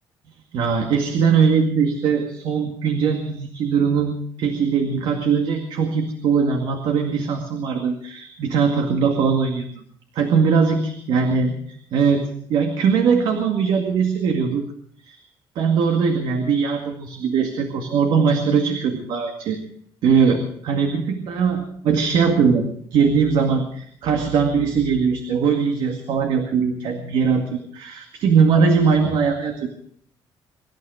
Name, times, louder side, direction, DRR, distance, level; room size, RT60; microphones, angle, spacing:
voice 1, 0.5-9.7 10.1-10.8 11.1-11.5 11.9-14.7 15.0-15.2 15.6-19.6 20.0-22.6 22.9-29.7, right 6 dB, 70° right, 4 dB, 2.1 m, -20 dB
24.5 x 12.0 x 4.9 m, 0.62 s
cardioid pair, 150°, 9 cm